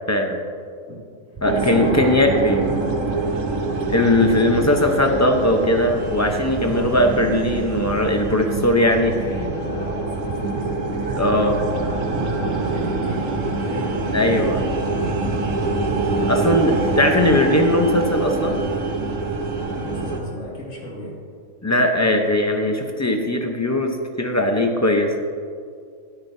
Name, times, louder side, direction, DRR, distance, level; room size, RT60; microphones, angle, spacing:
voice 1, 0.1-0.4 1.4-2.6 3.9-9.1 11.2-11.6 14.1-14.6 16.3-18.6 21.6-25.1, left 1 dB, 20° left, 3 dB, 0.5 m, -19 dB
voice 2, 1.3-3.2 4.1-4.9 6.6-7.2 8.7-14.7 16.5-17.0 19.7-21.2, left 1 dB, 75° left, -4 dB, 2.6 m, -34 dB
sound 1, 1.4-16.7, right 4 dB, 30° right, 0.6 m, -33 dB
sound 2, 1.4-20.2, right 3 dB, 75° right, 1.4 m, -25 dB
13.0 x 10.0 x 2.7 m, 2.2 s
omnidirectional pair, 1.4 m